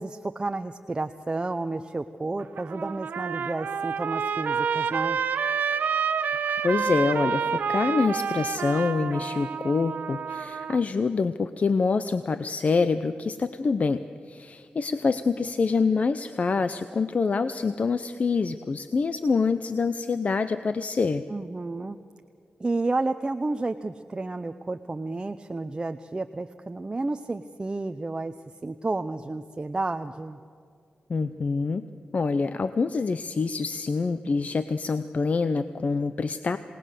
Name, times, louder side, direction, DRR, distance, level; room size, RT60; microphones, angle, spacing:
voice 1, 0.0-5.2 21.3-22.0 22.6-28.3 28.6-30.4, right 2 dB, 30° right, 7 dB, 0.7 m, -31 dB
Trumpet, 2.4-10.8, right 6 dB, 85° right, 0.9 m, -28 dB
voice 2, 6.6-14.0 14.3-21.2 31.1-31.9 32.1-36.6, left 4 dB, 50° left, 11 dB, 0.7 m, -26 dB
27.5 x 19.0 x 6.7 m, 2.4 s
cardioid pair, 80°, 3 cm